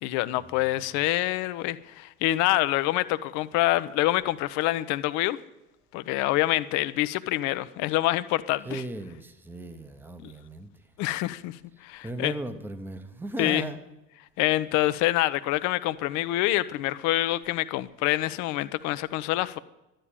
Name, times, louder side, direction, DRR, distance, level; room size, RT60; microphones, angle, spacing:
voice 1, 0.0-5.4 5.9-8.8 10.2-10.3 11.0-12.3 13.4-13.7 14.4-19.6, left 16 dB, 35° left, 15 dB, 0.6 m, -26 dB
voice 2, 8.6-10.7 12.0-13.8, right 2 dB, 5° right, 10 dB, 0.9 m, -36 dB
12.0 x 8.9 x 9.7 m, 0.97 s
figure-of-eight pair, 75°, 48 cm